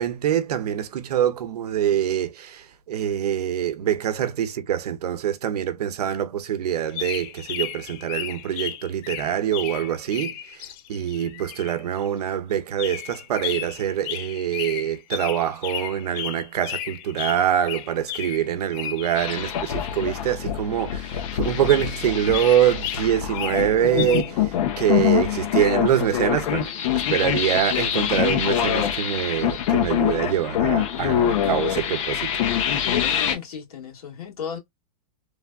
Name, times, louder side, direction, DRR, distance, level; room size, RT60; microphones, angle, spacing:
voice 1, 0.0-32.4, right 10 dB, 90° right, 0.7 m, -25 dB
sound 1, 6.9-12.1 12.8-20.1 20.8-21.3 21.7-24.3, left 11 dB, 35° left, 0.4 m, -34 dB
sound 2, 19.2-33.3, left 10 dB, 55° left, 0.7 m, -25 dB
voice 2, 32.7-34.6, left 7 dB, 75° left, 1.7 m, -33 dB
3.3 x 2.2 x 2.2 m
supercardioid pair, 145°, 19 cm